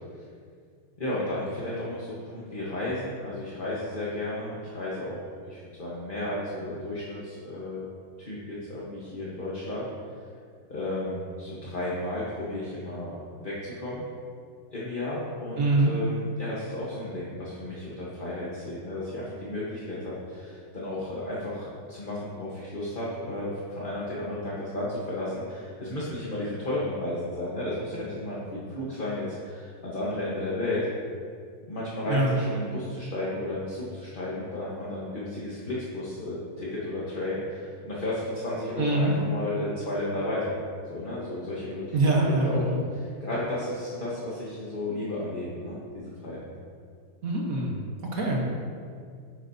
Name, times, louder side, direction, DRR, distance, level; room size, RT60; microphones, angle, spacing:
voice 1, 1.0-5.2 5.4-7.8 8.2-9.9 10.7-13.1 13.4-14.0 14.7-30.9 31.7-40.6 40.9-41.8 42.2-46.4, left 1 dB, 30° left, -7 dB, 1.1 m, -33 dB
voice 2, 15.6-15.9 32.1-32.4 38.8-39.1 41.9-42.8 47.2-47.8 48.0-48.4, right 2 dB, 50° right, -2 dB, 1.3 m, -24 dB
10.5 x 8.0 x 2.7 m, 2.2 s
omnidirectional pair, 2.2 m